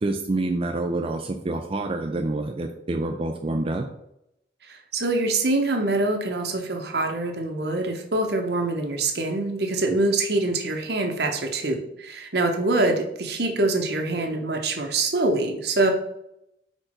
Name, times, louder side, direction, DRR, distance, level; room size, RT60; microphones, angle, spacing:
voice 1, 0.0-3.9, right 2 dB, 30° right, 4 dB, 0.4 m, -27 dB
voice 2, 4.9-15.9, right 2 dB, 65° right, 3 dB, 1.0 m, -24 dB
5.0 x 4.5 x 4.4 m, 0.80 s
head